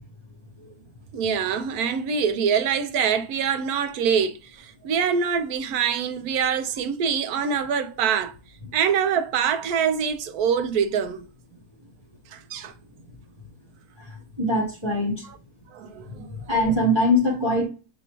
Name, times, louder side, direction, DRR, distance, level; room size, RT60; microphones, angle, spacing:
voice 1, 1.1-8.3 8.7-11.3 12.3-12.7 15.2-15.4 15.7-16.4, right 7 dB, 70° right, 1.0 m, -24 dB
voice 2, 14.4-15.2 16.3-17.7, left 1 dB, 20° right, 1.0 m, -22 dB
6.6 x 2.6 x 2.9 m
omnidirectional pair, 1.9 m